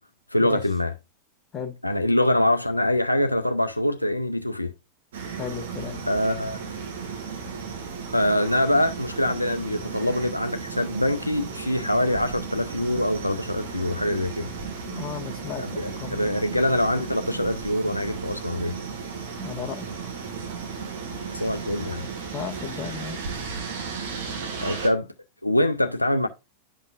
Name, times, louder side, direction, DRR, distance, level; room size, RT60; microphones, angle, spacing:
voice 1, 0.3-0.9 1.8-4.7 6.1-6.6 8.1-14.5 15.6-18.7 21.3-22.1 24.6-25.1 25.4-26.3, left 1 dB, 85° left, 0.5 m, -24 dB
sound 1, 5.1-24.9, right 5 dB, 60° right, 1.7 m, -35 dB
voice 2, 5.4-6.0 14.9-16.3 19.4-19.9 22.3-23.2, left 8 dB, 25° left, 1.4 m, -34 dB
10.0 x 5.4 x 2.4 m
figure-of-eight pair, 90°, 0 cm